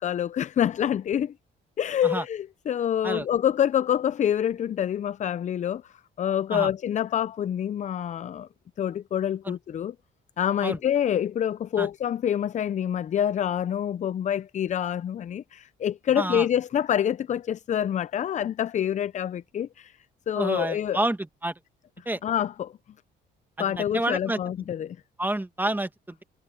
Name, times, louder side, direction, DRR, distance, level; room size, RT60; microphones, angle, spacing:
voice 1, 0.0-1.3 1.8-8.5 8.8-10.0 10.4-20.0 20.3-21.0 22.2-22.7 23.6-25.0, left 9 dB, 40° left, 0.4 m, -26 dB
voice 2, 20.4-21.2 21.4-21.5 22.0-22.2 23.9-24.4 25.2-26.2, right 1 dB, 10° right, 1.7 m, -28 dB
cardioid pair, 90°, 20 cm